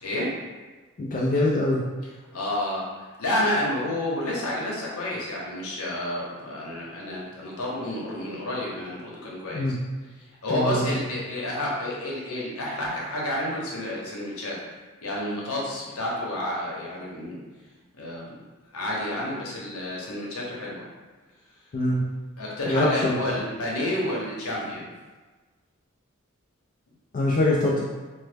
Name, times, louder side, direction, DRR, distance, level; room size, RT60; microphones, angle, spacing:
voice 1, 0.0-0.4 2.3-9.6 10.2-14.6 15.0-17.4 18.0-18.4 18.7-20.8 22.4-24.9, left 1 dB, 90° left, -4 dB, 0.8 m, -30 dB
voice 2, 1.0-1.8 9.5-9.7 10.5-11.0 21.7-22.0 22.7-23.2 27.1-27.8, left 1 dB, 40° left, -5 dB, 0.4 m, -23 dB
3.1 x 2.1 x 3.3 m, 1.3 s
head